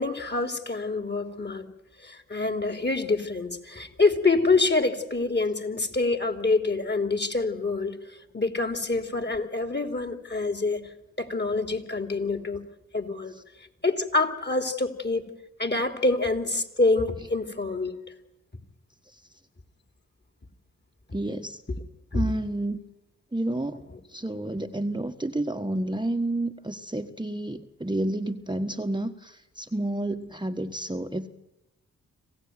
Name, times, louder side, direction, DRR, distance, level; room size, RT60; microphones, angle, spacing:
voice 1, 0.0-1.7 2.0-8.0 8.3-10.8 11.2-12.6 12.9-13.3 13.8-15.2 15.6-17.9 22.1-22.2, left 3 dB, 30° left, 8 dB, 3.2 m, -26 dB
voice 2, 21.1-21.6 22.1-22.8 23.3-31.3, right 1 dB, 15° right, 5 dB, 1.5 m, -30 dB
26.5 x 15.5 x 9.4 m, 0.93 s
supercardioid pair, 40°, 33 cm